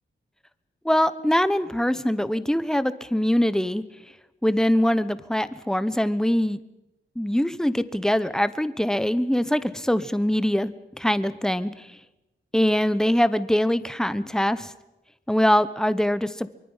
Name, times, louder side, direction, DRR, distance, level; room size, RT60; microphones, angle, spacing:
voice 1, 0.8-3.8 4.4-6.6 7.2-11.7 12.5-14.7 15.3-16.5, equal, 5° left, 14 dB, 0.8 m, -23 dB
24.0 x 23.5 x 5.6 m, 1.0 s
wide cardioid pair, 140°, 20 cm